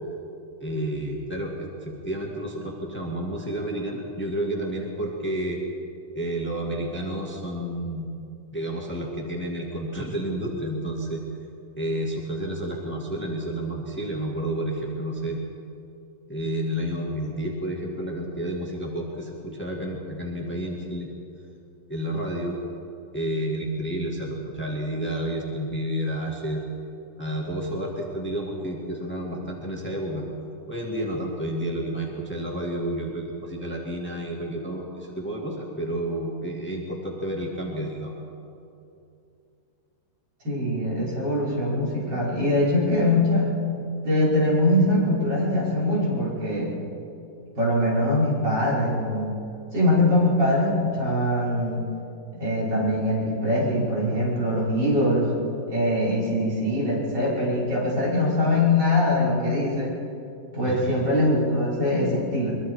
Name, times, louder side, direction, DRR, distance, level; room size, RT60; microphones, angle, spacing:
voice 1, 0.6-5.6 6.1-8.1 8.5-11.2 11.8-15.4 16.3-21.1 21.9-22.6 23.1-26.6 27.2-30.3 30.7-38.2 60.6-61.0, right 1 dB, 5° left, -1 dB, 2.3 m, -30 dB
voice 2, 40.4-43.5 44.0-46.7 47.6-49.4 49.7-51.9 52.4-55.3 55.7-59.9 60.5-62.5, left 1 dB, 65° right, -7 dB, 6.2 m, -22 dB
23.5 x 22.5 x 4.8 m, 2.6 s
omnidirectional pair, 2.1 m